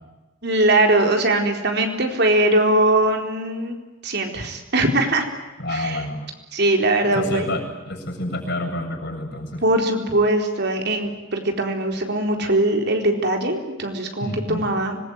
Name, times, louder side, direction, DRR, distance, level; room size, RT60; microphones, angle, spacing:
voice 1, 0.4-3.8 4.0-5.3 5.7-6.0 6.5-7.5 9.6-15.0, right 1 dB, 55° right, 3 dB, 4.2 m, -21 dB
voice 2, 5.6-6.2 7.0-9.6 14.2-14.6, left 1 dB, 55° left, 2 dB, 8.0 m, -28 dB
26.0 x 21.0 x 9.6 m, 1.1 s
head